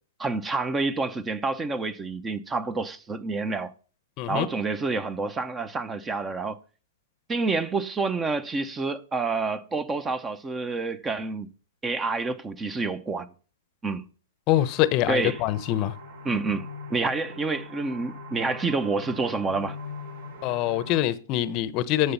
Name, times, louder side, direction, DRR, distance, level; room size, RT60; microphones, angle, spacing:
voice 1, 0.2-3.7 4.3-6.6 7.3-11.5 11.8-13.3 13.8-14.0 15.1-15.4 16.2-19.8, right 3 dB, 15° right, 0.8 m, -28 dB
voice 2, 14.5-15.9 20.4-22.1, left 13 dB, 40° left, 0.8 m, -24 dB
sound 1, 14.5-21.0, left 2 dB, 65° right, 5.0 m, -41 dB
11.0 x 6.9 x 5.5 m
hypercardioid pair, 125°, 0 cm